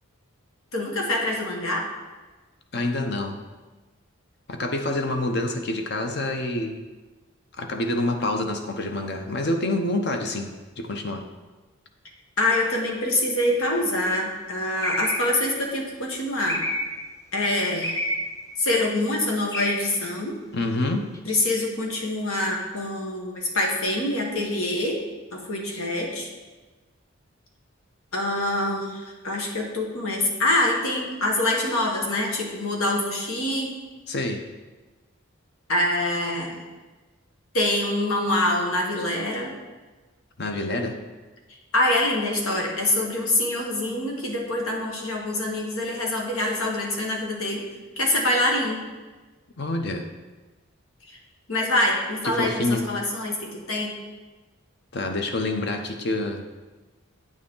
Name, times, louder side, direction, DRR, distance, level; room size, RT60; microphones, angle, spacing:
voice 1, 0.7-1.9 12.4-16.6 17.3-18.0 18.6-20.3 21.2-25.0 25.3-26.3 28.1-33.7 35.7-36.6 37.5-39.5 41.7-47.6 48.0-48.8 51.1-51.2 51.5-53.9, left 1 dB, 85° left, 0 dB, 1.5 m, -25 dB
voice 2, 2.7-3.4 4.5-6.8 7.6-11.3 20.5-21.1 34.1-34.4 40.4-41.0 49.6-50.1 52.2-52.9 54.9-56.4, left 2 dB, 50° left, 5 dB, 0.7 m, -27 dB
sound 1, 13.5-13.8 14.8-15.5 16.5-17.1 17.8-18.4 19.5-20.0 21.1-21.2, equal, 15° left, 0.6 m, -29 dB
8.7 x 6.4 x 3.8 m, 1.2 s
head